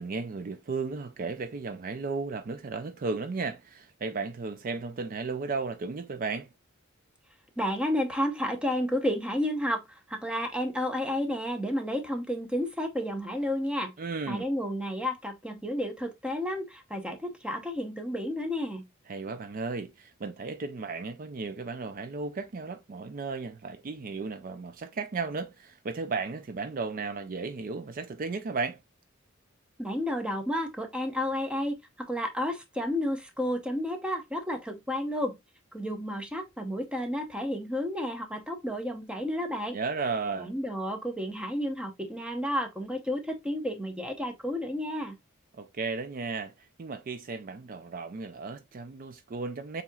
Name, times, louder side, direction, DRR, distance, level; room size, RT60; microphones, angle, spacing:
voice 1, 0.0-6.5 14.0-14.4 19.1-28.8 39.7-40.5 45.5-49.8, right 4 dB, 45° right, 0.4 m, -34 dB
voice 2, 7.6-9.8 10.1-13.9 14.3-18.8 29.8-35.4 35.7-39.8 40.4-45.1, equal, 5° right, 0.8 m, -31 dB
7.0 x 2.9 x 2.3 m
head